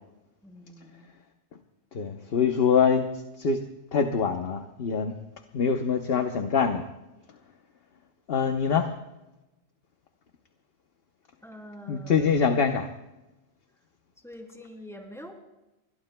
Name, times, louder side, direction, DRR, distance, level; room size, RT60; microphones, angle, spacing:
voice 1, 0.4-1.1 11.4-12.3 14.2-15.3, equal, 5° left, 1 dB, 3.2 m, -45 dB
voice 2, 1.9-3.1 3.4-3.6 3.9-5.1 5.5-6.9 8.3-8.9 11.9-12.9, left 6 dB, 60° left, 5 dB, 1.1 m, -24 dB
29.0 x 21.5 x 2.3 m, 0.98 s
omnidirectional pair, 1.1 m